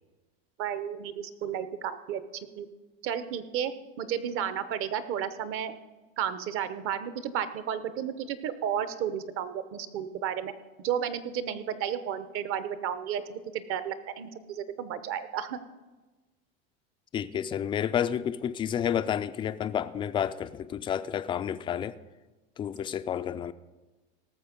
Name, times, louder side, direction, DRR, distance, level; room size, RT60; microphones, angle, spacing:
voice 1, 0.6-2.2 2.6-2.7 3.0-3.7 4.0-5.7 6.2-10.5 10.8-15.6, right 9 dB, 45° right, 0.9 m, -32 dB
voice 2, 17.1-22.0 22.6-23.5, left 9 dB, 15° left, 0.3 m, -30 dB
18.0 x 6.9 x 5.2 m
supercardioid pair, 125°, 31 cm